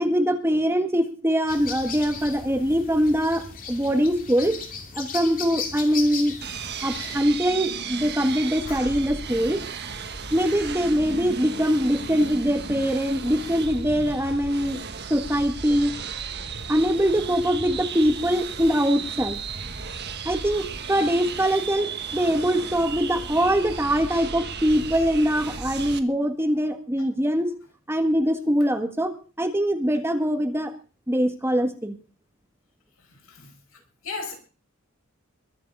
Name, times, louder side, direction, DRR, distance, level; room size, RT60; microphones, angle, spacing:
voice 1, 0.0-4.5 4.9-6.3 6.8-9.6 10.3-14.8 15.1-15.9 16.7-19.4 20.2-27.5 27.9-30.7 31.1-31.9, equal, 10° right, 1.6 m, -23 dB
sound 1, 1.5-7.2, left 5 dB, 40° left, 2.6 m, -36 dB
sound 2, 6.4-26.0, right 5 dB, 55° right, 1.5 m, -35 dB
voice 2, 33.1-33.5 34.0-34.4, left 4 dB, 85° left, 6.1 m, -36 dB
22.0 x 7.6 x 5.4 m
head